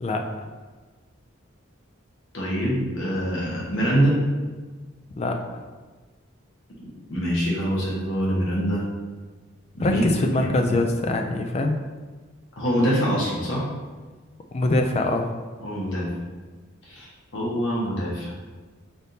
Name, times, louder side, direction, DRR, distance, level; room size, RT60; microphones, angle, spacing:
voice 1, 2.3-4.2 7.1-8.8 9.7-10.0 10.4-10.5 12.6-13.7 15.6-16.1 16.8-18.3, equal, 65° left, -5 dB, 1.1 m, -24 dB
voice 2, 9.8-11.8 14.5-15.3, left 2 dB, 30° left, 4 dB, 0.3 m, -23 dB
4.0 x 3.5 x 2.7 m, 1.3 s
head